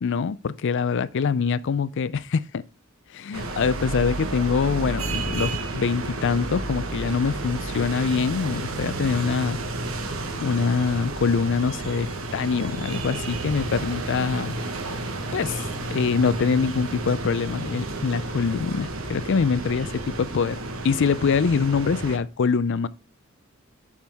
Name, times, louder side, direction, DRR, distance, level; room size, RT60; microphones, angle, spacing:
voice 1, 0.0-2.6 3.1-9.6 10.4-14.5 15.3-15.6 15.9-20.6 20.8-22.9, left 5 dB, 60° left, 0.4 m, -24 dB
sound 1, 3.3-22.2, right 2 dB, 70° right, 1.2 m, -31 dB
7.2 x 6.1 x 3.5 m
head